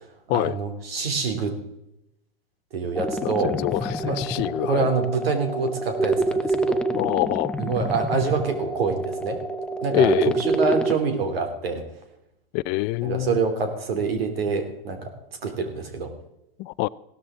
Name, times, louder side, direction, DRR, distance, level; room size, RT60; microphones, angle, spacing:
voice 1, 0.3-1.6 2.7-3.6 4.0-4.2 4.6-6.8 7.6-9.4 9.8-11.8 13.0-15.1 15.4-16.1, right 4 dB, 85° right, 3.2 m, -26 dB
sound 1, 3.0-11.0, right 2 dB, 5° left, 0.8 m, -27 dB
voice 2, 3.2-4.9 6.9-7.5 9.9-10.4 12.5-13.4 16.6-16.9, left 19 dB, 40° left, 0.4 m, -25 dB
16.0 x 13.0 x 3.8 m
hypercardioid pair, 115°, 29 cm